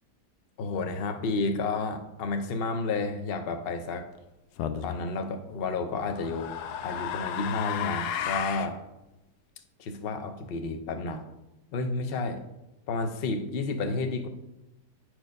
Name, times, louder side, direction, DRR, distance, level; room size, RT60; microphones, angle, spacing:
voice 1, 0.6-4.1 4.8-6.5 6.8-8.8 9.8-11.3 11.7-12.4 12.9-14.3, left 3 dB, 50° left, 6 dB, 0.7 m, -31 dB
sound 1, 4.6-5.0 6.0-8.7, left 9 dB, 75° left, 1.1 m, -33 dB
9.7 x 4.5 x 5.2 m, 0.96 s
omnidirectional pair, 1.8 m